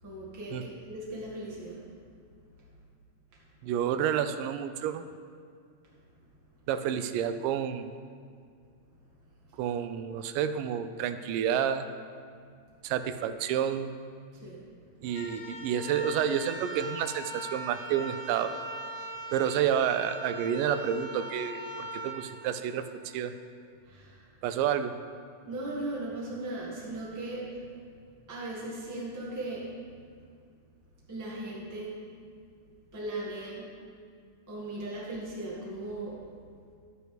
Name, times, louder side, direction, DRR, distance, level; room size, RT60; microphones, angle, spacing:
voice 1, 0.0-1.8 14.3-14.6 20.6-20.7 23.8-24.2 25.4-27.7 28.3-29.7 31.1-32.0 32.9-33.7 34.5-36.2, right 2 dB, 10° right, -5 dB, 0.8 m, -38 dB
voice 2, 3.6-5.1 6.7-7.9 9.6-11.9 12.8-13.9 15.0-18.5 19.3-22.9 23.1-23.3 24.4-24.9, right 9 dB, 90° right, 10 dB, 2.2 m, -29 dB
sound 1, 15.0-23.2, right 1 dB, 70° left, 2.2 m, -41 dB
11.5 x 9.2 x 3.4 m, 2.2 s
omnidirectional pair, 3.7 m